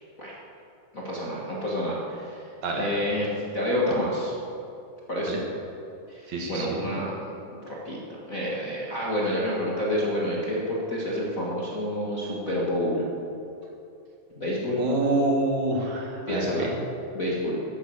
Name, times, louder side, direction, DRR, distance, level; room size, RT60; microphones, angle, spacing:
voice 1, 0.9-4.3 5.1-5.4 6.1-13.0 14.3-14.8 16.3-16.7 17.1-17.6, left 1 dB, 35° left, -6 dB, 1.5 m, -29 dB
voice 2, 2.6-2.9 5.3-5.4 6.3-6.8 14.8-16.8, right 2 dB, 65° right, 0 dB, 2.9 m, -27 dB
11.5 x 9.3 x 7.1 m, 2.7 s
omnidirectional pair, 3.5 m